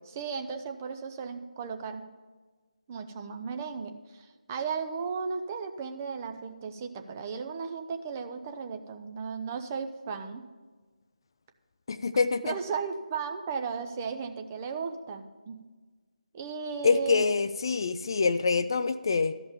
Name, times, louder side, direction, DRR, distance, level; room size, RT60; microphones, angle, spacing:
voice 1, 0.2-2.1 2.9-10.4 12.4-15.6 16.3-17.2, right 5 dB, 20° right, 6 dB, 0.6 m, -35 dB
voice 2, 11.9-12.5 16.8-19.3, left 4 dB, 35° left, 12 dB, 0.3 m, -25 dB
12.5 x 5.4 x 7.0 m, 1.4 s
figure-of-eight pair, 155°, 4 cm